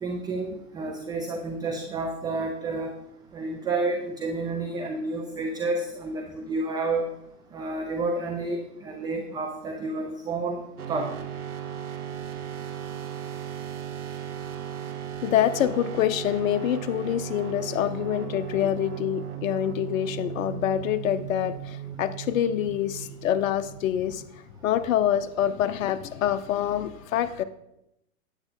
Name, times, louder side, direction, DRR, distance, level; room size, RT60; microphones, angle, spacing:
voice 1, 0.0-2.9 3.3-7.0 7.5-10.6 10.9-11.1, right 3 dB, 10° right, 3 dB, 0.4 m, -30 dB
sound 1, 10.8-24.3, right 9 dB, 85° right, 1.5 m, -36 dB
voice 2, 15.2-24.2 24.6-27.4, left 11 dB, 60° left, 10 dB, 0.8 m, -26 dB
9.7 x 8.1 x 3.8 m, 0.83 s
hypercardioid pair, 115°, 44 cm